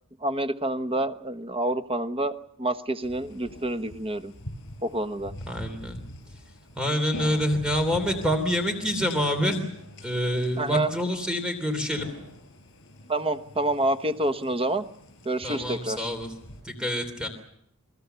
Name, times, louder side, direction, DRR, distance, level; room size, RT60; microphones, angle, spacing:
voice 1, 0.2-4.3 4.8-5.3 10.6-10.9 13.1-14.8 15.2-16.1, right 2 dB, 25° right, 9 dB, 1.1 m, -28 dB
sound 1, 3.0-16.6, equal, 60° left, 7.6 m, -44 dB
voice 2, 5.5-6.0 6.8-9.7 10.0-12.1 15.4-16.3 16.6-17.3, equal, 5° right, 6 dB, 3.2 m, -26 dB
29.0 x 20.5 x 6.9 m, 0.75 s
head